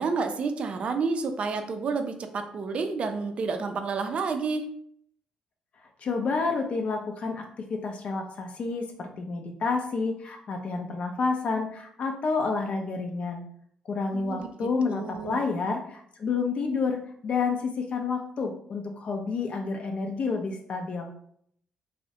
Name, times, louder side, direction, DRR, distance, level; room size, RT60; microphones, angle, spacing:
voice 1, 0.0-4.7 14.1-15.4, right 4 dB, 50° right, 7 dB, 0.3 m, -30 dB
voice 2, 6.0-13.4 13.9-21.1, left 4 dB, 55° left, 3 dB, 0.4 m, -29 dB
2.3 x 2.0 x 2.7 m, 0.65 s
supercardioid pair, 75°, 3 cm